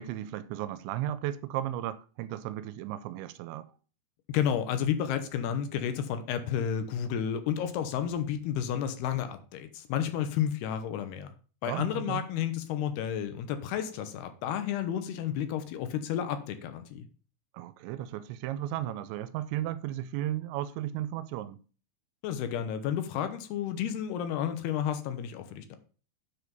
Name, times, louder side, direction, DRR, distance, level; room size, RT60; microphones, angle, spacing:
voice 1, 0.0-3.7 11.6-12.3 17.5-21.6, right 13 dB, 90° right, 2.9 m, -35 dB
voice 2, 4.3-11.3 11.6-17.1 22.2-25.8, left 9 dB, 75° left, 2.8 m, -31 dB
9.7 x 5.1 x 5.2 m
omnidirectional pair, 5.1 m